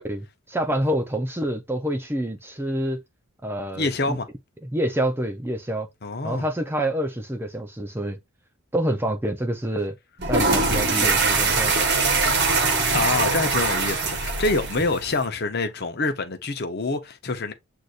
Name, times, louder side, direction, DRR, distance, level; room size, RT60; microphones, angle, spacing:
voice 1, 0.0-3.0 3.4-4.2 4.6-5.9 6.2-8.2 8.7-10.0 10.3-11.9, right 1 dB, 10° right, 0.5 m, -27 dB
voice 2, 3.8-4.3 6.0-6.5 12.9-17.5, left 3 dB, 45° left, 0.8 m, -26 dB
sound 1, 10.2-15.2, right 3 dB, 50° right, 1.1 m, -22 dB
7.9 x 2.7 x 2.4 m
head